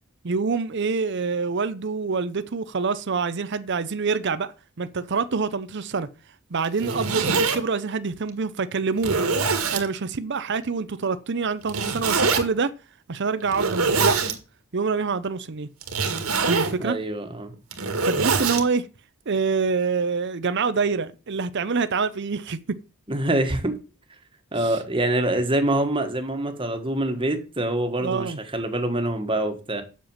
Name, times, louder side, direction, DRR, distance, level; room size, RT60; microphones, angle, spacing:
voice 1, 0.2-4.5 4.8-6.1 6.5-9.2 9.7-12.7 13.1-14.2 14.7-15.7 16.4-17.0 18.0-18.9 19.3-22.8 28.0-28.4, right 4 dB, 55° right, 0.6 m, -26 dB
Zipper (clothing), 6.6-7.6 8.3-8.4 9.0-9.9 11.7-12.4 13.4-14.3 15.8-16.8 17.5-18.6, right 4 dB, 85° right, 1.9 m, -23 dB
voice 2, 16.8-17.5 23.1-23.8 24.5-29.8, right 1 dB, 25° right, 1.6 m, -25 dB
7.8 x 6.9 x 7.3 m
head